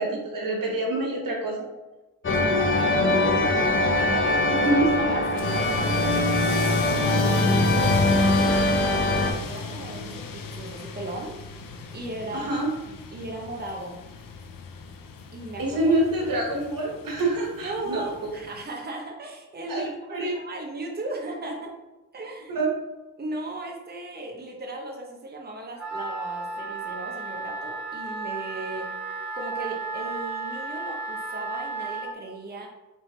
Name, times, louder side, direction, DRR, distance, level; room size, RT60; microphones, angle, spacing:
voice 1, 0.0-1.6 4.5-5.0 12.3-12.7 15.6-18.3 19.7-20.3 22.5-22.7, right 1 dB, 80° right, -1 dB, 1.2 m, -26 dB
sound 1, 2.2-9.3, left 2 dB, 35° left, 0.8 m, -22 dB
voice 2, 2.4-3.5 4.0-6.1 6.4-7.4 7.7-11.6 11.9-12.5 12.9-14.0 15.3-16.3 17.6-21.7 22.1-22.6 23.2-28.9 29.3-32.7, right 2 dB, 30° right, 0 dB, 0.8 m, -36 dB
sound 2, 5.4-18.6, left 5 dB, 85° left, 0.5 m, -34 dB
Wind instrument woodwind instrument, 25.8-32.1, right 3 dB, 5° right, 1.5 m, -33 dB
3.9 x 3.4 x 3.1 m, 1.1 s
cardioid pair, 55°, 33 cm